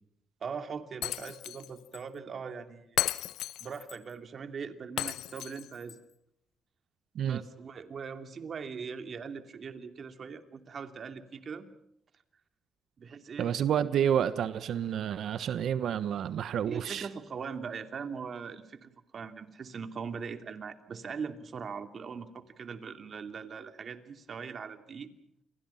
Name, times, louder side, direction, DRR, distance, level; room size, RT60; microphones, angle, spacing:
voice 1, 0.4-3.0 3.6-6.0 7.2-11.7 13.0-13.6 16.7-25.1, right 6 dB, 50° right, 8 dB, 2.8 m, -41 dB
Shatter, 1.0-1.7 1.9-2.0 3.0-4.0 5.0-5.9, left 13 dB, 80° left, 1.0 m, -34 dB
voice 2, 13.4-17.1, right 9 dB, 70° right, 14 dB, 1.2 m, -29 dB
30.0 x 23.5 x 5.8 m, 0.75 s
cardioid pair, 90°, 0 cm